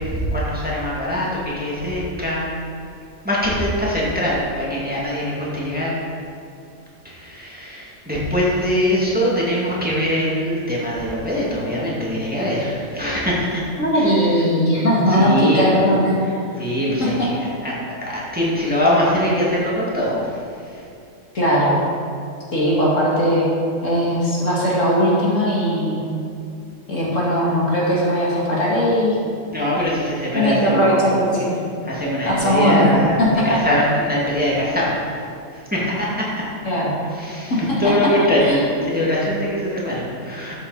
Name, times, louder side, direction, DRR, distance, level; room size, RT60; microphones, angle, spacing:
voice 1, 0.0-2.6 3.2-5.9 7.0-13.6 14.0-14.1 15.1-15.9 16.2-16.3 16.6-17.4 17.6-17.8 18.0-20.8 29.5-31.1 31.8-33.2 33.4-35.0 35.5-36.3 37.1-40.6, equal, 5° right, -6 dB, 2.1 m, -22 dB
voice 2, 13.8-16.2 17.0-17.3 21.3-21.8 22.5-23.4 23.8-26.0 26.9-29.2 30.3-31.6 32.3-32.9 33.2-33.6 36.6-37.0 37.5-37.9 38.4-38.6, equal, 60° left, -6 dB, 2.7 m, -19 dB
13.0 x 7.8 x 4.1 m, 2.5 s
omnidirectional pair, 1.5 m